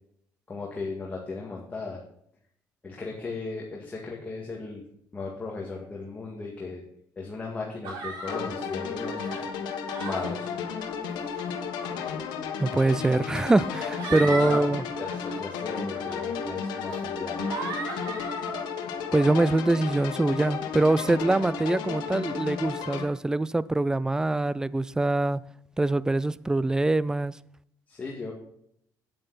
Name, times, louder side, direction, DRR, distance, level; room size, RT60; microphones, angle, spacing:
voice 1, 0.5-2.0 2.8-4.8 5.1-6.8 7.2-9.4 10.0-10.5 14.1-14.7 15.0-17.4 27.9-28.3, left 3 dB, 25° left, 1.9 m, -36 dB
sound 1, 7.8-8.4 9.1-9.4 9.9-10.3 11.2-11.5 12.6-12.7 13.6-14.6 15.0-15.4 16.0-16.2 16.8-17.0 17.4-18.6, right 2 dB, 85° right, 4.2 m, -35 dB
sound 2, 8.3-23.0, left 6 dB, 85° left, 1.4 m, -33 dB
voice 2, 12.6-14.8 19.1-25.4 25.8-27.3, right 2 dB, 10° right, 0.3 m, -24 dB
8.9 x 8.8 x 4.1 m
cardioid pair, 125°, 7 cm